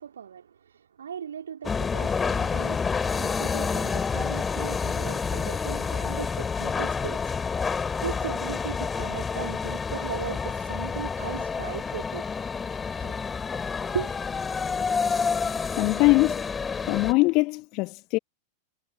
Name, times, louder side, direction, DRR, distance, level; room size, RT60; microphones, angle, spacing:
voice 1, 0.0-7.2 8.0-12.3 13.0-13.1 13.9-14.1, right 8 dB, 65° right, 3.4 m, -37 dB
sound 1, 1.6-17.1, left 5 dB, 15° left, 2.7 m, -29 dB
voice 2, 15.8-16.4 16.9-18.2, left 24 dB, 40° left, 1.6 m, -22 dB
figure-of-eight pair, 90°, 0 cm